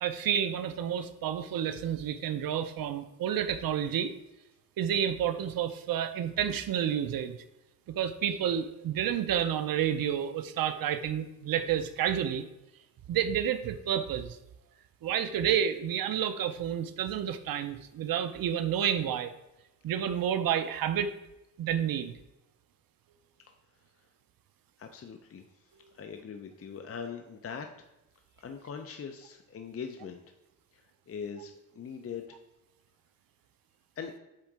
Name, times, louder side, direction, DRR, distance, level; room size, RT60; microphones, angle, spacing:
voice 1, 0.0-4.1 4.8-7.4 8.0-12.4 13.1-14.4 15.0-19.3 19.8-21.1 21.6-22.1, right 9 dB, 75° right, 9 dB, 0.6 m, -30 dB
voice 2, 24.8-25.5 25.9-27.9 28.4-30.3 30.7-32.4 34.0-34.1, left 6 dB, 40° left, 6 dB, 0.6 m, -41 dB
7.5 x 3.8 x 4.7 m, 0.94 s
wide cardioid pair, 110°, 34 cm